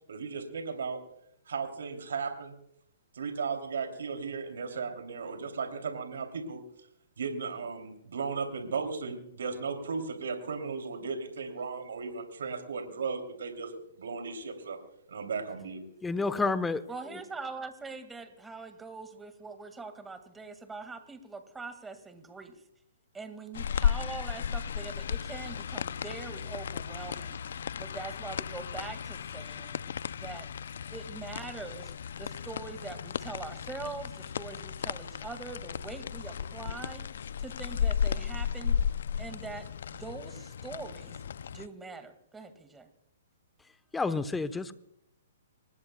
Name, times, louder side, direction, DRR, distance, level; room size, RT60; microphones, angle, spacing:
voice 1, 0.1-1.0 1.5-2.5 3.1-6.6 7.2-14.8 15.1-15.8, right 5 dB, 75° right, 5 dB, 3.0 m, -36 dB
voice 2, 16.0-16.8 43.9-44.7, left 3 dB, 10° left, 12 dB, 1.0 m, -29 dB
voice 3, 16.9-22.6 23.1-29.8 30.2-30.5 30.9-38.9 39.2-42.9, right 4 dB, 10° right, 8 dB, 2.0 m, -43 dB
sound 1, 23.5-41.7, left 8 dB, 70° left, 0.5 m, -34 dB
25.5 x 19.5 x 2.3 m, 0.75 s
hypercardioid pair, 130°, 0 cm